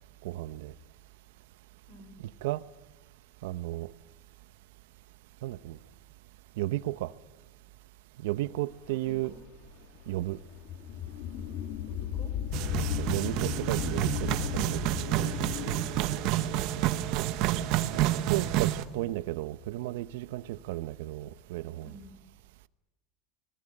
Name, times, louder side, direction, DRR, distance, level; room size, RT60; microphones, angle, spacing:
voice 1, 0.2-0.7 2.4-2.6 3.4-3.9 5.4-5.8 6.6-7.1 8.2-9.4 10.1-10.4 13.0-15.3 17.9-21.9, right 16 dB, 80° right, 0.9 m, -34 dB
sound 1, 8.8-17.8, left 9 dB, 50° left, 1.9 m, -36 dB
voice 2, 8.9-9.4 11.9-12.3 16.2-16.7 21.8-22.1, left 2 dB, 30° left, 4.7 m, -51 dB
sound 2, 12.5-18.8, right 14 dB, 50° right, 1.3 m, -29 dB
25.0 x 20.0 x 9.9 m
cardioid pair, 170°, 0 cm